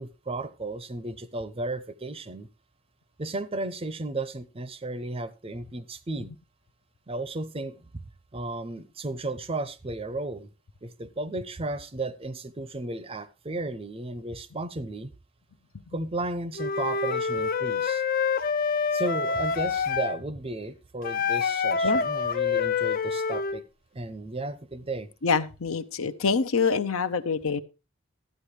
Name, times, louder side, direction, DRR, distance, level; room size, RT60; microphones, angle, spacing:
voice 1, 0.0-2.5 3.2-6.3 7.1-8.0 8.3-10.5 10.8-15.1 15.9-18.0 18.9-23.6 23.9-25.1, right 2 dB, 25° right, 15 dB, 0.5 m, -34 dB
Wind instrument woodwind instrument, 16.5-20.2 21.0-23.6, left 5 dB, 40° left, 0.4 m, -27 dB
voice 2, 25.2-27.6, left 5 dB, 75° left, 12 dB, 0.7 m, -25 dB
13.0 x 9.1 x 3.2 m, 0.29 s
head